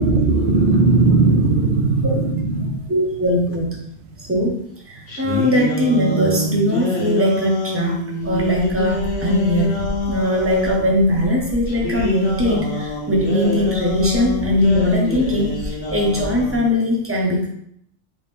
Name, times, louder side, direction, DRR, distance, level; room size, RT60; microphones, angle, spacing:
voice 1, 0.0-2.9 4.1-4.2, right 3 dB, 75° right, 4 dB, 0.8 m, -17 dB
voice 2, 2.9-3.8 4.2-4.5 4.9-9.8 10.1-17.5, left 1 dB, 15° right, -2 dB, 0.6 m, -20 dB
sound 1, 5.1-10.9 11.7-16.7, left 1 dB, 75° left, 1.1 m, -26 dB
sound 2, 8.2-16.6, left 1 dB, 60° left, 0.7 m, -34 dB
3.1 x 2.7 x 3.4 m, 0.70 s
omnidirectional pair, 1.1 m